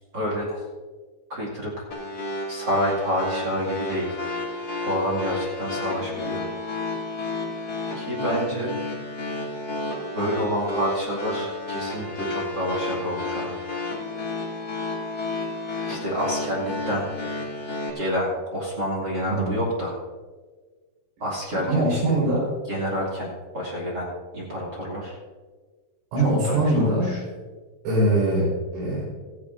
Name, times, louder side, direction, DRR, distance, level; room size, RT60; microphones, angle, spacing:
voice 1, 0.1-0.6 1.3-1.8 2.5-4.1 4.8-6.4 7.9-8.7 10.1-13.6 15.8-17.1 17.9-20.0 21.2-22.2 22.7-25.2 26.5-27.2, equal, 40° right, -4 dB, 1.5 m, -28 dB
sound 1, 1.9-17.9, left 2 dB, 45° left, 1.2 m, -31 dB
voice 2, 21.7-22.5 26.1-27.1 27.9-29.0, right 1 dB, 90° right, -8 dB, 7.3 m, -22 dB
16.5 x 14.5 x 2.6 m, 1.4 s
omnidirectional pair, 5.6 m